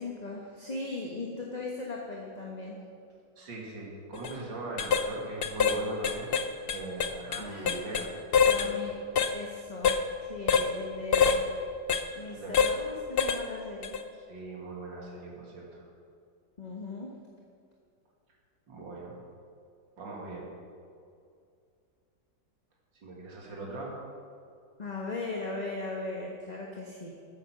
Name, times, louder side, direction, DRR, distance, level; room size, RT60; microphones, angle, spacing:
voice 1, 0.0-2.8 7.4-7.8 8.5-9.0 9.3-9.9 10.2-11.4 12.1-14.0 16.6-17.1 24.8-27.1, left 3 dB, 25° left, -1 dB, 1.2 m, -38 dB
voice 2, 3.4-6.4 6.7-8.1 8.5-8.9 12.2-12.6 14.1-15.9 18.7-19.1 20.0-20.5 22.9-23.9, right 2 dB, 85° right, -2 dB, 2.8 m, -40 dB
sound 1, 4.1-4.3 4.8-5.1 5.4-5.8 6.0-8.1 8.3-8.7 9.2-9.3 9.8-10.0 10.5-10.7 11.1-11.4 11.9-12.0 12.5-12.8 13.2-13.4 13.8-14.0, left 6 dB, 60° left, 0.6 m, -25 dB
14.0 x 9.1 x 6.0 m, 2.3 s
omnidirectional pair, 1.9 m